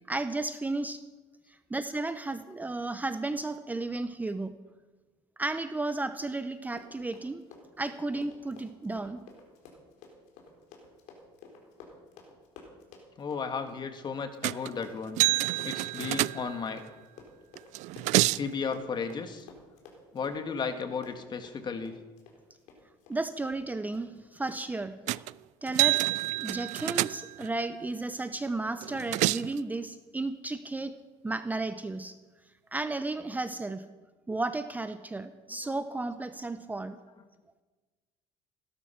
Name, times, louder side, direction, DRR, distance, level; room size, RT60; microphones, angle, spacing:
voice 1, 0.1-1.0 1.7-4.5 5.4-7.4 7.8-9.2 23.1-25.0 25.6-26.0 26.4-30.9 31.2-32.2 32.7-33.8 34.3-37.0, right 2 dB, 15° right, 10 dB, 0.8 m, -33 dB
Run, 6.6-23.2 23.5-23.6 23.9-24.2 24.5-24.6 25.1-25.2, left 4 dB, 75° left, 4.1 m, -52 dB
voice 2, 13.2-15.2 15.6-16.8 18.4-19.5 20.1-21.9, left 5 dB, 35° left, 7 dB, 1.9 m, -34 dB
sound 1, 14.4-14.8 15.2-16.8 17.6-18.5 25.1-25.3 25.7-27.5 28.8-29.6, right 18 dB, 70° right, 0.4 m, -28 dB
17.5 x 12.0 x 5.9 m, 1.3 s
cardioid pair, 105°, 13 cm